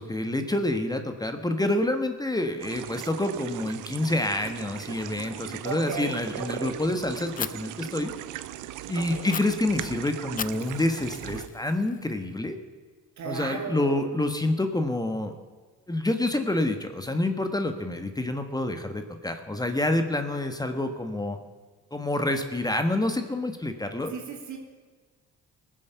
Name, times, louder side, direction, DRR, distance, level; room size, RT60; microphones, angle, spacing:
voice 1, 0.0-8.1 8.9-12.6 13.2-15.3 15.9-21.4 21.9-24.1, left 1 dB, 15° left, 7 dB, 1.3 m, -28 dB
sound 1, 2.6-11.5, right 13 dB, 85° right, 0.7 m, -39 dB
voice 2, 5.6-6.7 9.1-9.2 13.2-14.0 24.1-24.6, right 5 dB, 70° right, 2 dB, 2.9 m, -35 dB
Fire, 7.4-7.5 9.3-9.4 10.4-12.3, left 7 dB, 30° left, 0.4 m, -37 dB
20.0 x 7.6 x 6.9 m, 1.4 s
cardioid pair, 90°, 30 cm